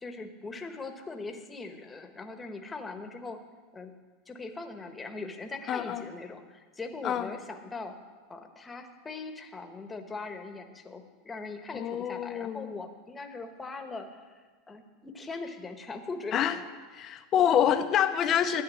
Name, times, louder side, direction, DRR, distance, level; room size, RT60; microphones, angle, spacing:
voice 1, 0.0-3.4 3.7-3.9 4.3-8.0 8.3-16.7, left 3 dB, 15° left, 6 dB, 1.2 m, -40 dB
voice 2, 5.7-6.0 7.0-7.3 11.7-12.7 16.3-16.6 16.9-18.6, left 9 dB, 35° left, 8 dB, 0.7 m, -26 dB
12.5 x 9.0 x 6.4 m, 1.4 s
supercardioid pair, 130°, 0 cm